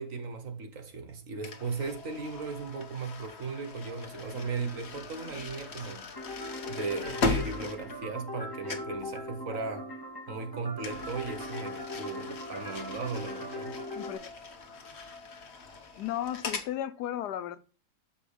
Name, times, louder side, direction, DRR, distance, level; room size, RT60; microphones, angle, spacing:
voice 1, 0.0-6.1 6.7-9.9 10.3-13.7, right 4 dB, 55° right, 1.6 m, -37 dB
sound 1, 1.4-8.4 8.7-9.0 10.8-16.7, left 3 dB, 45° left, 1.3 m, -38 dB
sound 2, 6.2-14.2, left 1 dB, 15° left, 1.0 m, -40 dB
voice 2, 13.9-14.5 16.0-17.6, left 11 dB, 85° left, 1.2 m, -35 dB
7.0 x 5.2 x 4.9 m
omnidirectional pair, 1.7 m